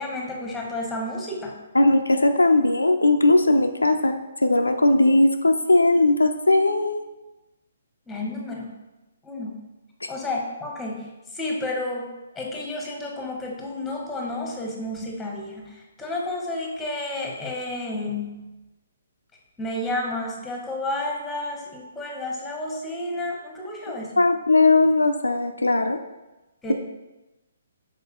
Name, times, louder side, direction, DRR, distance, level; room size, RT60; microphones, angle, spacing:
voice 1, 0.0-1.6 8.1-8.8 9.2-9.7 10.1-12.1 12.3-18.4 19.6-24.1 26.6-26.7, left 2 dB, 10° left, -1 dB, 0.9 m, -31 dB
voice 2, 1.7-7.0 10.0-10.1 23.9-26.0, left 2 dB, 85° left, 6 dB, 0.3 m, -19 dB
5.4 x 3.7 x 2.3 m, 1.0 s
figure-of-eight pair, 130°, 0 cm